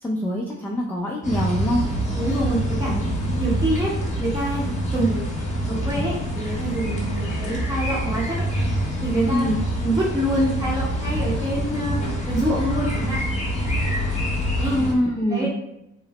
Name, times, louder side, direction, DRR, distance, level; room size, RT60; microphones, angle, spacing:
voice 1, 0.0-1.8 9.3-9.6 14.7-15.5, equal, 5° left, -3 dB, 0.4 m, -24 dB
sound 1, 1.2-14.9, equal, 25° left, 0.8 m, -26 dB
voice 2, 2.2-3.1 3.4-3.9 4.2-5.3 5.7-8.4 9.0-9.5 9.8-13.2 14.6-14.8 15.3-15.5, right 1 dB, 10° right, -9 dB, 0.7 m, -26 dB
2.9 x 2.0 x 2.8 m, 0.86 s
cardioid pair, 90°, 30 cm